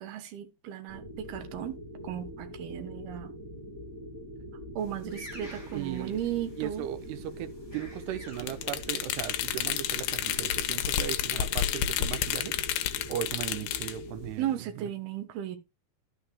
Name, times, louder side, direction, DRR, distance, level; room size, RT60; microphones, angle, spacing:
voice 1, 0.0-3.3 4.8-6.9 14.4-15.6, right 11 dB, 75° right, 3.1 m, -35 dB
sound 1, 0.9-14.3, equal, 5° right, 3.9 m, -43 dB
sound 2, 4.8-14.6, left 1 dB, 10° left, 4.6 m, -54 dB
voice 2, 5.4-6.2 6.6-12.5 13.1-14.9, right 12 dB, 90° right, 2.9 m, -37 dB
sound 3, 8.4-13.9, left 11 dB, 80° left, 2.7 m, -30 dB
11.5 x 6.4 x 3.5 m
omnidirectional pair, 4.6 m